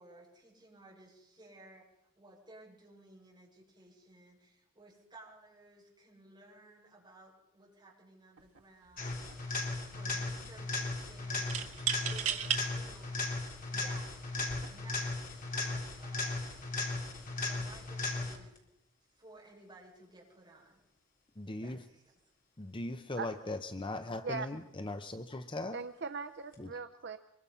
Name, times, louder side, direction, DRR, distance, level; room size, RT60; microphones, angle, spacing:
voice 1, 0.0-1.9 2.2-9.2 9.9-14.1 14.5-16.4 17.5-18.6 19.1-20.8 21.5-22.2, right 2 dB, 20° right, 7.0 m, -57 dB
sound 1, 8.4-8.6 8.9-9.6 11.5-12.6 13.3-13.4 14.3-14.7, right 9 dB, 85° right, 1.7 m, -35 dB
sound 2, 9.0-18.6 26.5-26.6, left 2 dB, 40° left, 3.6 m, -37 dB
voice 2, 21.4-21.8 22.6-25.8 26.6-26.7, left 2 dB, 25° left, 0.8 m, -39 dB
voice 3, 25.7-27.2, right 5 dB, 50° right, 0.7 m, -39 dB
24.0 x 22.5 x 5.7 m
head